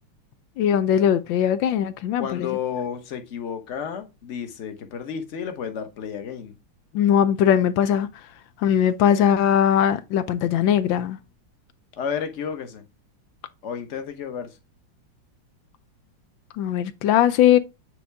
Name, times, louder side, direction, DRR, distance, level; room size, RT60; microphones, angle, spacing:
voice 1, 0.6-2.5 6.9-8.1 8.6-11.2 16.6-17.6, left 9 dB, 80° left, 1.3 m, -20 dB
voice 2, 2.2-6.5 12.0-12.8 13.6-14.6, left 7 dB, 45° left, 1.2 m, -31 dB
8.3 x 3.8 x 3.4 m
omnidirectional pair, 2.2 m